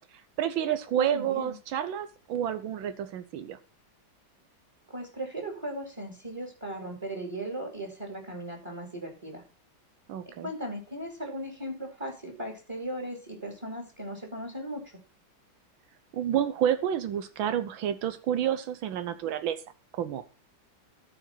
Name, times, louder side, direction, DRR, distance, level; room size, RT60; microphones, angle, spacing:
voice 1, 0.4-3.6 10.1-10.5 16.1-19.6 19.9-20.2, right 10 dB, 80° right, 11 dB, 1.6 m, -29 dB
voice 2, 0.9-1.6 4.9-9.4 10.3-14.8, right 1 dB, 15° right, 1 dB, 2.5 m, -37 dB
14.0 x 5.1 x 5.8 m, 0.32 s
omnidirectional pair, 2.2 m